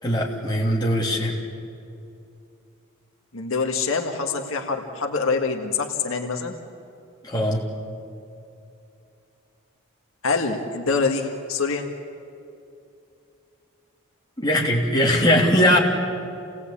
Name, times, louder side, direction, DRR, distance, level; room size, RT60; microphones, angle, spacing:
voice 1, 0.0-1.4 7.2-7.6 14.4-15.8, equal, 20° left, -3 dB, 3.1 m, -20 dB
voice 2, 3.3-6.5 10.2-11.8, left 4 dB, 70° left, 3 dB, 1.7 m, -25 dB
28.0 x 18.0 x 8.5 m, 2.7 s
head